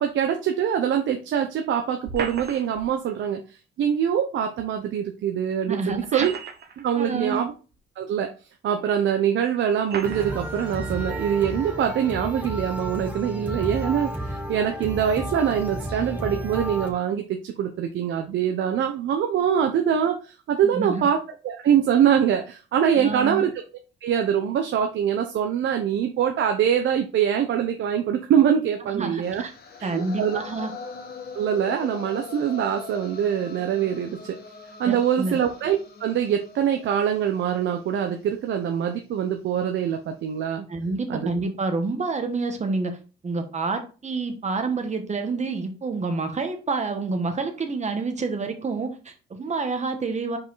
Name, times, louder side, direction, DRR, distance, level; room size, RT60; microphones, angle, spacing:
voice 1, 0.0-3.4 3.8-6.3 6.8-7.5 8.0-8.3 8.6-21.2 21.4-23.5 24.0-29.4 29.8-30.4 31.3-34.4 34.8-40.7 41.1-41.3, right 9 dB, 75° right, 5 dB, 0.9 m, -24 dB
sound 1, 2.0-2.9 4.6-4.7 5.9-6.9 7.7-7.8 8.8-8.9 9.8-10.4, right 5 dB, 55° right, 1.3 m, -34 dB
voice 2, 5.7-6.3 6.9-7.4 20.6-21.1 22.9-23.5 28.9-29.5 29.8-30.7 34.8-35.4 40.7-43.0 43.2-50.4, right 3 dB, 35° right, 6 dB, 1.4 m, -28 dB
sound 2, 10.0-16.9, right 1 dB, 10° right, 2.2 m, -32 dB
sound 3, 29.2-39.3, left 5 dB, 50° left, 1.5 m, -42 dB
5.2 x 4.9 x 3.9 m, 0.34 s
cardioid pair, 90°, 20 cm